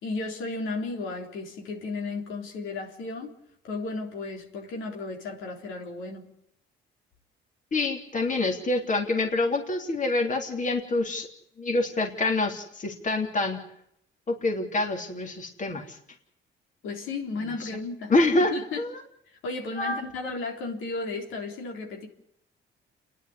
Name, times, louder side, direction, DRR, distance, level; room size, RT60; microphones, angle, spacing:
voice 1, 0.0-3.3 3.6-6.3 16.8-18.1 18.4-18.8 19.3-22.1, left 3 dB, 85° left, 3.8 m, -34 dB
voice 2, 7.7-11.3 11.6-13.6 14.3-16.0 17.5-17.7 18.1-19.0 19.8-20.0, left 2 dB, 40° left, 3.2 m, -26 dB
28.5 x 11.0 x 9.7 m
cardioid pair, 90°, 20 cm